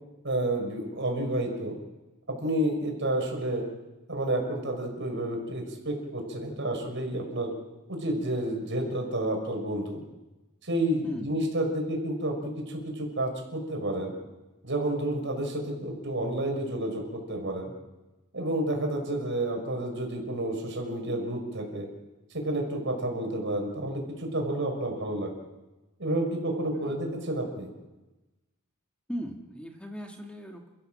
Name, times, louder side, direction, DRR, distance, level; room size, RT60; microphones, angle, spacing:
voice 1, 0.2-1.8 2.3-3.6 4.1-7.5 7.9-10.0 10.6-14.1 14.6-17.7 18.3-21.9 22.3-25.3 26.0-27.7, right 1 dB, 60° right, 2 dB, 5.7 m, -30 dB
voice 2, 11.0-11.4 26.7-27.0 29.1-30.7, equal, 5° left, 1 dB, 1.9 m, -38 dB
29.5 x 15.0 x 7.6 m, 1.1 s
head